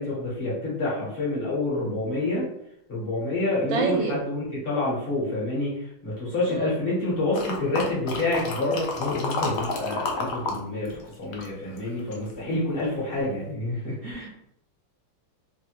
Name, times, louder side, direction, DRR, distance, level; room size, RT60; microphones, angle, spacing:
voice 1, 0.0-2.5 2.9-14.3, left 2 dB, 40° left, -6 dB, 0.9 m, -28 dB
voice 2, 3.7-4.2 6.5-6.7, right 4 dB, 80° right, 3 dB, 1.3 m, -27 dB
sound 1, 7.3-10.6 10.8-12.3 12.8-12.9, left 3 dB, 80° left, 0.8 m, -31 dB
3.2 x 2.1 x 2.8 m, 0.76 s
omnidirectional pair, 2.0 m